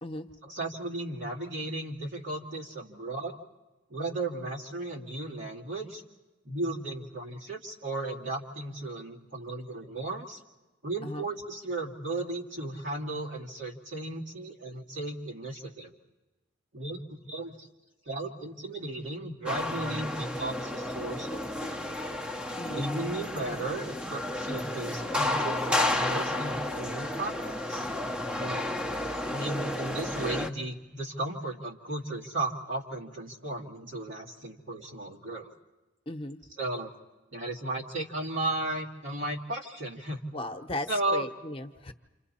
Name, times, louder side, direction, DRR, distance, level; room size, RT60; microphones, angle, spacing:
voice 1, 0.4-3.4 3.9-6.0 6.4-10.4 10.8-15.9 16.7-17.7 18.0-21.9 22.7-27.9 28.4-28.7 29.2-35.5 36.6-36.9 37.3-40.2 40.9-41.3, right 2 dB, 85° right, -2 dB, 2.4 m, -35 dB
sound 1, 19.5-30.5, left 1 dB, 5° right, 0.7 m, -32 dB
voice 2, 22.6-23.0 36.1-36.4 40.3-41.9, left 1 dB, 30° left, 6 dB, 0.9 m, -37 dB
29.0 x 27.5 x 4.3 m, 1.1 s
head